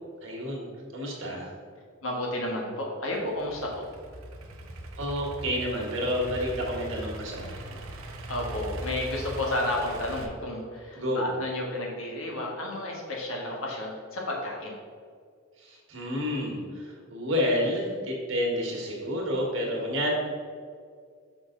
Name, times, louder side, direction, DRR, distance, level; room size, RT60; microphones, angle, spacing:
voice 1, 0.2-1.5 5.0-7.8 10.9-11.3 15.6-20.1, equal, 65° right, -2 dB, 1.6 m, -30 dB
voice 2, 2.0-3.8 8.3-14.7, left 1 dB, 75° left, -1 dB, 1.5 m, -32 dB
Idling / Accelerating revving vroom, 3.1-10.3, right 1 dB, 80° right, 0.7 m, -40 dB
5.8 x 5.7 x 3.8 m, 2.1 s
head